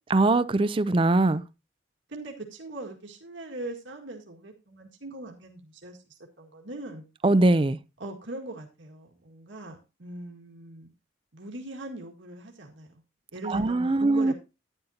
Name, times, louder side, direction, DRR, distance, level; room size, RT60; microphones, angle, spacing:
voice 1, 0.1-1.4 7.2-7.8 13.5-14.3, right 2 dB, 30° right, 0.4 m, -21 dB
voice 2, 2.1-7.1 8.0-10.9 11.3-12.9 13.3-14.3, right 2 dB, 85° right, 2.0 m, -40 dB
11.5 x 10.0 x 2.8 m
head